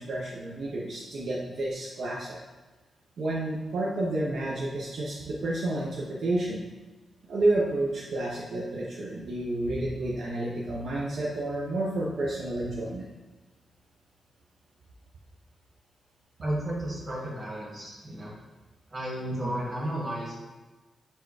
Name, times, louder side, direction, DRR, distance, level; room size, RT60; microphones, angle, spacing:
voice 1, 0.0-2.4 3.2-6.6 7.3-13.1 19.3-19.6, right 2 dB, 65° right, -4 dB, 0.6 m, -30 dB
voice 2, 16.4-18.3 18.9-20.3, right 1 dB, 25° right, -5 dB, 1.3 m, -33 dB
4.2 x 2.3 x 4.7 m, 1.2 s
wide cardioid pair, 135°, 0 cm